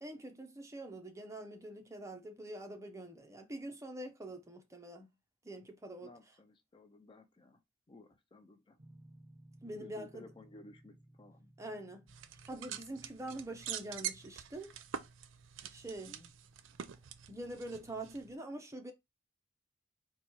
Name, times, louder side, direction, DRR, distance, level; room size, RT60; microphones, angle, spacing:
voice 1, 0.0-5.1 5.4-6.1 9.6-10.3 11.6-12.0 12.5-14.7 15.7-16.1 17.3-18.9, right 1 dB, 15° right, 0.6 m, -45 dB
voice 2, 6.0-7.6 7.9-8.8 9.8-11.5 15.9-16.3, left 2 dB, 25° left, 0.4 m, -56 dB
sound 1, 8.8-14.4, right 1 dB, 40° right, 1.9 m, -61 dB
sound 2, 12.1-18.3, right 9 dB, 80° right, 0.5 m, -45 dB
4.2 x 2.3 x 4.4 m
head